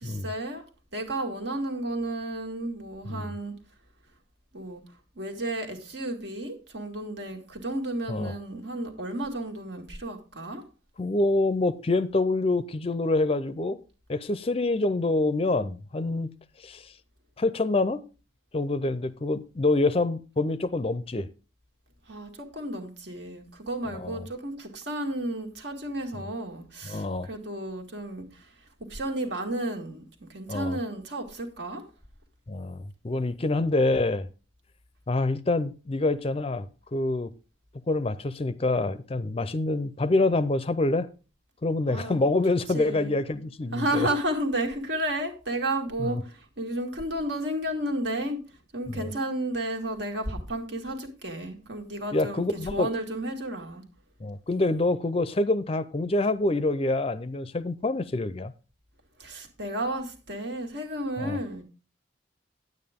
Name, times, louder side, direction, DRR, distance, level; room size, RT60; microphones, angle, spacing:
voice 1, 0.0-0.6 0.9-3.5 4.5-4.8 5.2-10.6 22.1-28.3 28.9-30.0 30.3-31.8 41.9-42.2 42.7-43.1 43.7-46.2 46.6-48.4 48.7-52.4 52.7-53.8 59.2-61.6, right 1 dB, 70° right, 1.9 m, -32 dB
voice 2, 11.0-13.8 14.1-16.3 16.6-16.8 17.4-18.0 18.5-21.3 23.9-24.3 26.1-26.2 26.8-27.3 30.5-30.8 32.5-34.3 35.1-36.7 36.9-37.3 37.9-41.1 41.6-44.1 46.0-46.2 48.9-49.1 52.1-52.9 54.2-58.5 61.2-61.4, left 2 dB, 30° left, 0.5 m, -26 dB
9.6 x 8.7 x 3.6 m
head